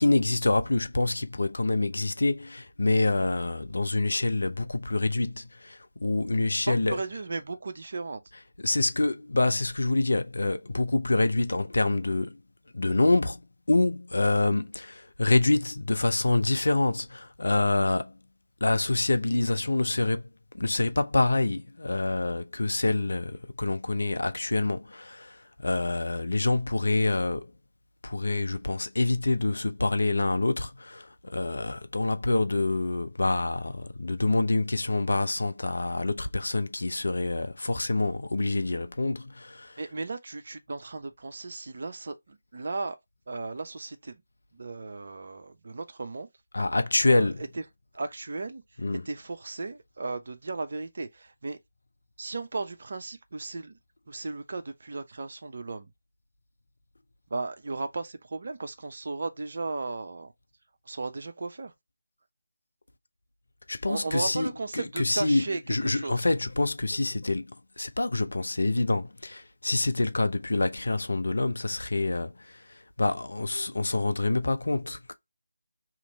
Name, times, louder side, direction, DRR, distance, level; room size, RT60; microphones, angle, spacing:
voice 1, 0.0-7.0 8.6-12.4 12.7-13.4 13.7-18.2 18.6-20.2 20.5-27.5 28.0-39.8 46.5-47.4 48.8-49.0 63.7-75.1, left 2 dB, 60° left, 0.5 m, -26 dB
voice 2, 6.7-8.2 39.8-43.0 43.3-44.2 44.5-46.3 47.0-47.6 47.9-48.6 49.0-51.6 52.2-53.8 54.1-55.9 57.3-60.3 60.9-61.7 63.9-66.2, right 3 dB, 45° right, 0.5 m, -35 dB
2.8 x 2.5 x 3.9 m
figure-of-eight pair, 155°, 0 cm